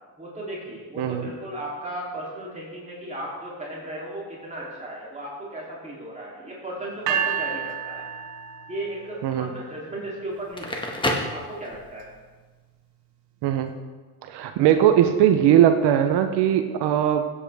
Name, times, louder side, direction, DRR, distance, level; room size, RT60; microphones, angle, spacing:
voice 1, 0.2-8.0 8.7-12.1, right 1 dB, 15° right, -6 dB, 3.2 m, -36 dB
voice 2, 1.0-1.3 9.2-9.5 13.4-13.7 14.2-17.3, right 10 dB, 65° right, 7 dB, 1.0 m, -19 dB
sound 1, 7.1-9.2, right 8 dB, 85° right, 1.3 m, -29 dB
Crackle, 10.4-12.1, left 1 dB, 10° left, 1.6 m, -29 dB
16.0 x 8.4 x 3.5 m, 1.4 s
cardioid pair, 100°, 43 cm